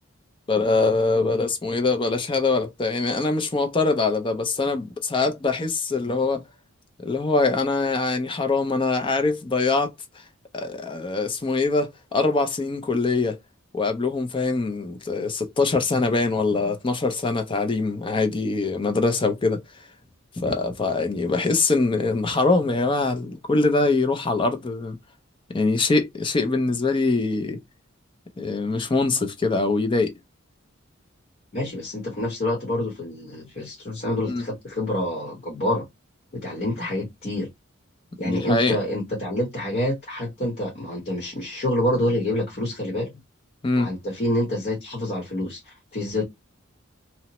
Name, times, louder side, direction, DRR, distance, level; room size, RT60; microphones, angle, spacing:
voice 1, 0.5-6.4 7.0-9.9 10.5-13.4 13.7-19.6 20.4-25.0 25.5-27.6 28.4-30.1 34.3-34.4 38.2-38.8 43.6-43.9, left 3 dB, 25° left, 0.4 m, -23 dB
voice 2, 31.5-35.8 36.3-37.5 38.2-43.1 43.8-46.2, left 1 dB, 45° left, 1.0 m, -27 dB
2.9 x 2.1 x 2.9 m
head